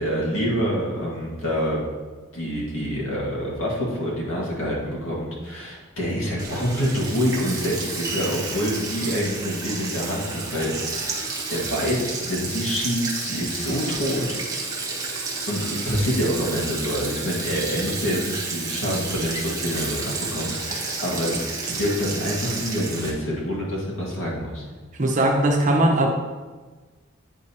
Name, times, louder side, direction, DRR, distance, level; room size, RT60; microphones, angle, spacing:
voice 1, 0.0-1.9 2.3-11.1 11.5-14.4 15.5-24.7, equal, 80° left, -4 dB, 1.8 m, -26 dB
Sink (filling or washing), 6.4-23.1, right 3 dB, 20° right, 1.1 m, -31 dB
voice 2, 25.0-26.1, right 1 dB, 40° right, 1 dB, 0.8 m, -19 dB
9.1 x 4.9 x 2.9 m, 1.3 s
head